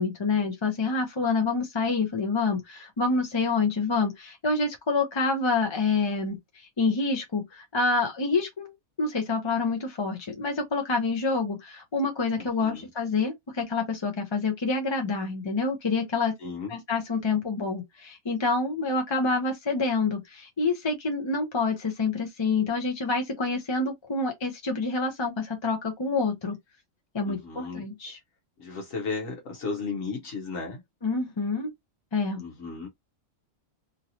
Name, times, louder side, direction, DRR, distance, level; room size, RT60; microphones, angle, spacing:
voice 1, 0.0-8.7 9.0-16.3 16.7-26.6 27.1-28.2 31.0-31.7 32.1-32.4, left 3 dB, 35° left, 0.5 m, -27 dB
voice 2, 16.4-16.7 27.3-27.8 28.6-30.8 32.4-32.9, left 4 dB, 80° left, 1.3 m, -34 dB
3.0 x 2.7 x 2.7 m
omnidirectional pair, 1.3 m